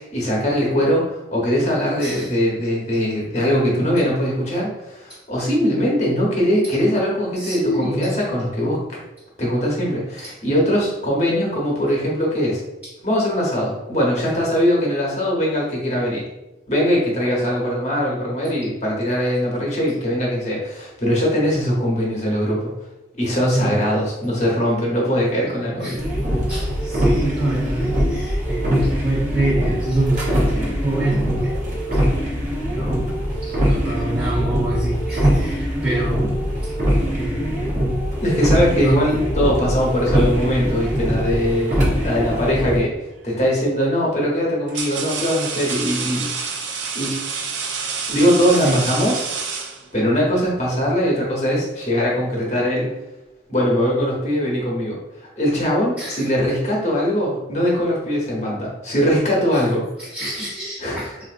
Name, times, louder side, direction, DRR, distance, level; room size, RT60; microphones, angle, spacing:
voice 1, 0.0-8.8 9.4-12.6 13.0-16.2 16.7-22.7 23.2-26.0 38.2-43.0 43.2-46.6 46.9-47.2 48.1-49.2 49.9-52.9 53.5-59.9 60.8-61.1, equal, 40° left, -4 dB, 1.0 m, -21 dB
voice 2, 2.0-2.3 5.1-5.2 7.3-8.2 10.2-10.3 12.8-12.9 23.5-23.8 25.8-26.0 26.5-31.5 31.8-32.0 32.8-33.1 33.4-36.7 37.1-37.8 38.8-39.1 48.5-48.9 56.0-56.2 59.5-59.6 60.0-61.1, right 2 dB, 10° right, -10 dB, 0.6 m, -26 dB
windscreen wipers light rain, 26.0-42.8, equal, 40° right, 0.8 m, -22 dB
sound 1, 43.1-43.4 44.2-50.2, right 5 dB, 80° right, 0.4 m, -28 dB
4.0 x 2.6 x 2.5 m, 0.98 s
head